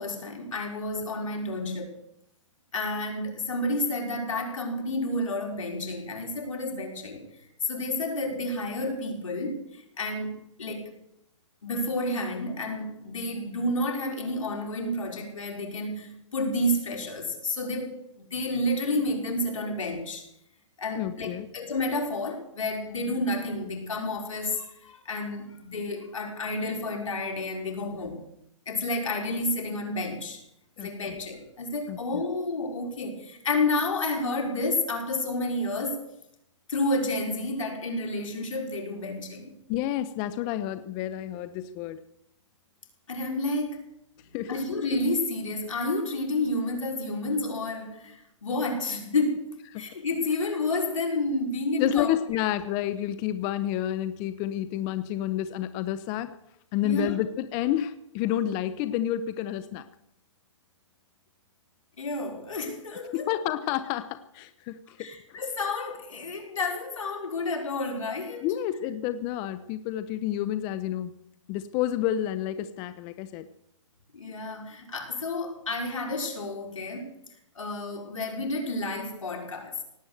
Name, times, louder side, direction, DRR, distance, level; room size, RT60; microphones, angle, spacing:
voice 1, 0.0-2.0 2.7-7.2 7.6-11.0 11.6-20.3 20.8-28.2 28.7-30.4 30.8-36.0 36.7-39.5 43.1-43.9 44.5-52.1 56.8-57.1 62.0-63.3 65.0-68.5 74.1-77.1 77.5-79.8, left 2 dB, 85° left, 2 dB, 4.7 m, -30 dB
voice 2, 20.9-21.5 30.8-30.9 31.9-32.0 39.7-42.0 44.3-44.5 49.7-49.9 51.8-56.3 56.7-59.8 63.1-65.4 68.4-71.1 71.5-73.5, left 12 dB, 25° left, 12 dB, 0.7 m, -29 dB
18.0 x 8.8 x 7.9 m, 0.77 s
hypercardioid pair, 150°, 16 cm